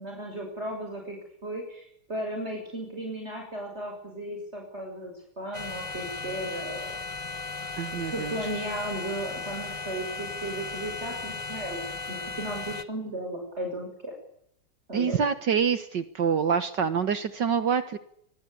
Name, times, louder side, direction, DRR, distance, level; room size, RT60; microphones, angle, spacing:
voice 1, 0.0-7.0 8.0-14.1 14.9-15.2, right 1 dB, 30° right, 1 dB, 6.5 m, -35 dB
sound 1, 5.5-12.8, left 3 dB, 30° left, 0.6 m, -36 dB
voice 2, 7.8-8.3 14.9-18.0, right 6 dB, 60° right, 12 dB, 1.9 m, -26 dB
25.0 x 24.0 x 8.6 m, 0.71 s
omnidirectional pair, 2.3 m